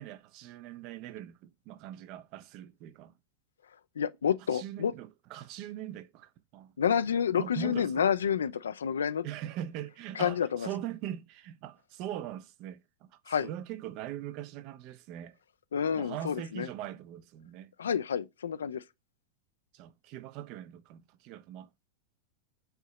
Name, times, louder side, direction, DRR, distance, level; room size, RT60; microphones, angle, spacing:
voice 1, 0.0-3.1 4.5-6.7 7.4-8.1 9.2-15.3 15.9-17.7 19.7-21.7, right 11 dB, 40° right, 0.4 m, -41 dB
voice 2, 4.0-4.9 6.8-9.3 10.2-10.7 13.3-13.5 15.7-16.7 17.8-18.8, left 8 dB, 65° left, 0.3 m, -29 dB
5.6 x 2.8 x 3.1 m
figure-of-eight pair, 90°, 0 cm